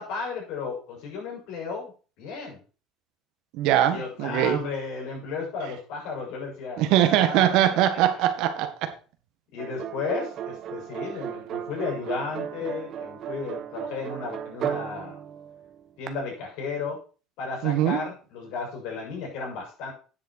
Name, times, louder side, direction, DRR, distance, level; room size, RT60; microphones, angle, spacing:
voice 1, 0.0-2.6 3.9-8.2 9.5-15.2 16.0-17.0 17.4-19.9, left 4 dB, 75° left, 6.8 m, -34 dB
voice 2, 3.5-4.6 6.8-8.9 17.6-18.0, right 12 dB, 70° right, 1.7 m, -22 dB
sound 1, 9.6-16.1, right 9 dB, 50° right, 1.2 m, -35 dB
10.5 x 7.6 x 4.5 m
cardioid pair, 120°, 0 cm